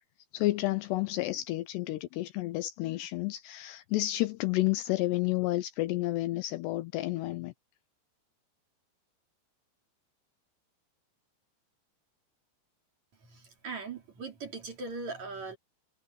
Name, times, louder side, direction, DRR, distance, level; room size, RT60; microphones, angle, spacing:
voice 1, 0.3-7.5, left 17 dB, 80° left, 2.6 m, -30 dB
voice 2, 13.2-15.6, right 3 dB, 45° right, 3.8 m, -40 dB
omnidirectional pair, 5.3 m